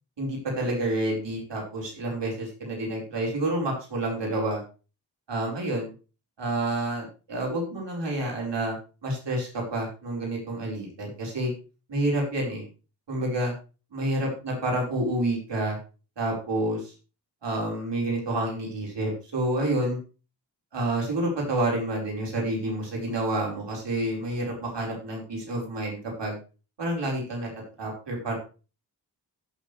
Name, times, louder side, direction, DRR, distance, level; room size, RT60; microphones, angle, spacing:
voice 1, 0.2-4.6 5.3-5.9 6.4-8.7 9.0-11.5 11.9-12.6 13.1-13.5 13.9-15.8 16.2-16.9 17.4-20.0 20.7-26.4 26.8-27.5 27.8-28.4, right 1 dB, 70° right, -2 dB, 5.0 m, -29 dB
16.0 x 6.5 x 3.4 m, 0.33 s
cardioid pair, 45°, 43 cm